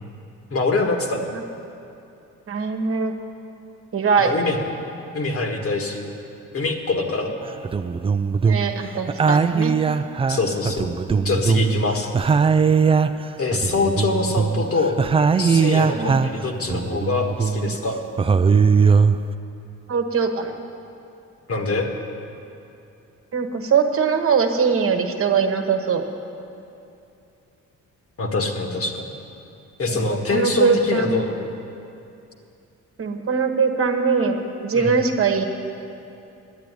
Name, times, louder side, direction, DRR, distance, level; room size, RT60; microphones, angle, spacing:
voice 1, 0.5-1.2 4.2-4.6 5.1-6.1 6.5-7.3 10.3-10.9 11.2-12.1 13.4-15.0 15.4-18.0 21.5-21.9 28.2-29.1 29.8-31.4 34.7-34.9, left 3 dB, 50° left, 3 dB, 1.6 m, -24 dB
voice 2, 2.5-3.1 3.9-4.3 8.4-9.8 13.0-13.2 15.9-16.3 19.9-20.5 23.3-26.0 29.9-30.0 30.3-31.2 33.0-35.5, right 5 dB, 45° right, 5 dB, 1.2 m, -21 dB
sound 1, 7.5-8.8 9.1-11.8 12.1-16.4 16.7-17.8 18.2-19.3, right 5 dB, 20° right, 0.3 m, -20 dB
10.5 x 8.6 x 9.5 m, 2.7 s
cardioid pair, 90°, 30 cm